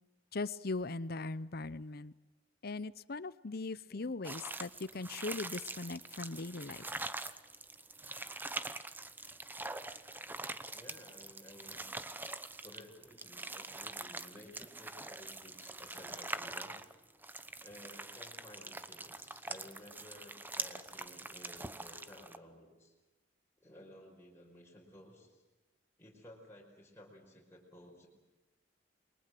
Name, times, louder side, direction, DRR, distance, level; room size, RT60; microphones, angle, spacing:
voice 1, 0.3-2.1 2.6-6.8, left 3 dB, 55° left, 17 dB, 0.8 m, -39 dB
sound 1, 4.2-22.4, right 2 dB, 10° right, 1.0 m, -44 dB
voice 2, 10.7-11.9 12.6-16.8 17.6-22.9 23.6-25.4 26.0-28.1, left 1 dB, 15° left, -3 dB, 5.1 m, -55 dB
29.0 x 23.0 x 7.7 m, 1.1 s
head